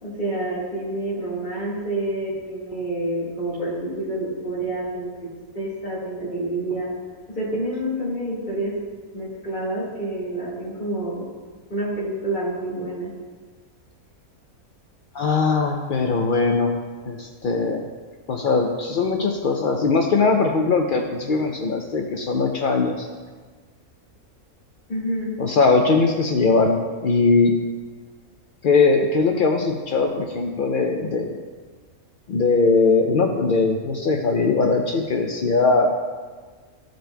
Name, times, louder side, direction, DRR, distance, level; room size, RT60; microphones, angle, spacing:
voice 1, 0.0-5.3 5.5-6.9 7.3-8.7 9.1-11.2 11.7-13.1 24.9-25.3, right 1 dB, 35° left, -10 dB, 1.8 m, -28 dB
voice 2, 15.1-16.7 17.1-17.9 18.3-23.1 25.4-27.5 28.6-31.3 32.3-35.9, left 4 dB, 65° left, 2 dB, 0.5 m, -20 dB
14.0 x 5.1 x 2.2 m, 1.5 s
omnidirectional pair, 1.5 m